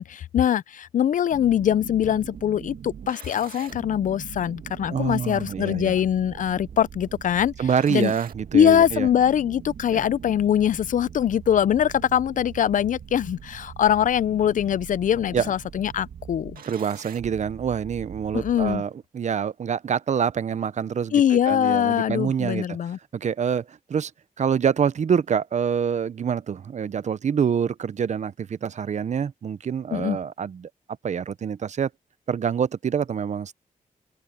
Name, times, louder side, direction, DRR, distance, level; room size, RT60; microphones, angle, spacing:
voice 1, 0.0-7.5 7.9-8.1 8.5-16.6 18.3-18.8 21.1-23.0 29.9-30.2, left 9 dB, 65° left, 0.4 m, -22 dB
sound 1, 1.3-18.8, right 8 dB, 85° right, 2.3 m, -42 dB
voice 2, 4.9-6.0 7.6-9.1 9.9-10.0 15.3-15.5 16.6-22.8 23.1-24.1 24.4-30.7 31.0-31.9 32.3-33.5, right 7 dB, 55° right, 0.7 m, -26 dB
open air
wide cardioid pair, 115°, 15 cm